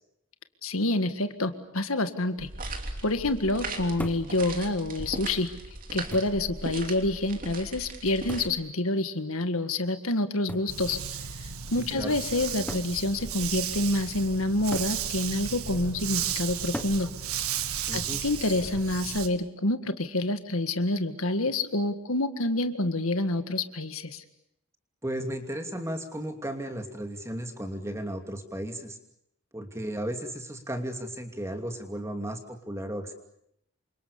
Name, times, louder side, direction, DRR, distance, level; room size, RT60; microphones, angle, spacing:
voice 1, 0.6-2.5 3.0-5.5 5.9-11.0 11.4-17.1 17.9-24.2, left 2 dB, 70° left, 9 dB, 1.8 m, -28 dB
sound 1, 2.4-8.5, right 2 dB, 40° right, 3.1 m, -38 dB
sound 2, 4.0-4.4 5.4-5.5 6.1-6.5 8.3-8.6 10.5-10.8 11.8-11.9 12.7-13.0 14.7-15.0 16.7-17.0 18.6-19.0, equal, 5° left, 1.4 m, -38 dB
Dog, 10.7-19.3, right 8 dB, 75° right, 1.8 m, -34 dB
voice 2, 11.8-12.1 17.9-18.2 25.0-29.0 29.5-33.1, right 1 dB, 15° right, 5 dB, 2.7 m, -35 dB
28.5 x 25.5 x 7.0 m, 0.75 s
head